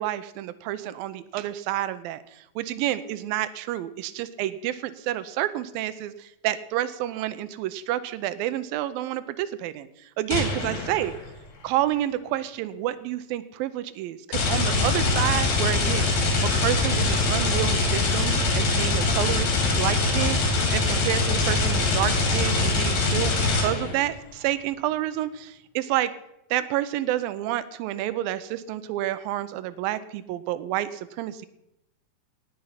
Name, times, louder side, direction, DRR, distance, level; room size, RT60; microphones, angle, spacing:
voice 1, 0.0-11.1 11.6-16.1 16.4-26.1 26.5-31.5, right 13 dB, 90° right, 14 dB, 2.4 m, -29 dB
sound 1, 10.3-11.3 14.3-24.1, left 3 dB, 75° left, 4.1 m, -23 dB
18.0 x 7.1 x 5.7 m, 0.84 s
omnidirectional pair, 4.1 m